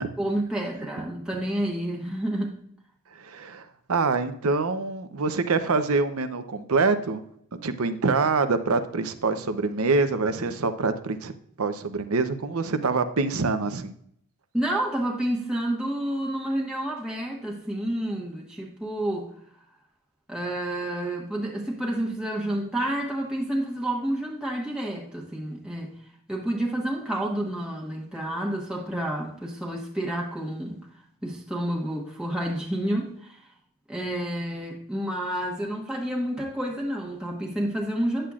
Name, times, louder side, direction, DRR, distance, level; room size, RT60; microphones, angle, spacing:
voice 1, 0.2-2.6 14.5-19.3 20.3-25.9 26.3-30.8 31.2-33.4 33.9-38.3, right 1 dB, 5° right, -3 dB, 1.3 m, -29 dB
voice 2, 3.2-7.2 7.6-11.3 11.6-13.9, right 4 dB, 75° right, 10 dB, 0.7 m, -25 dB
10.0 x 7.7 x 2.4 m, 0.67 s
head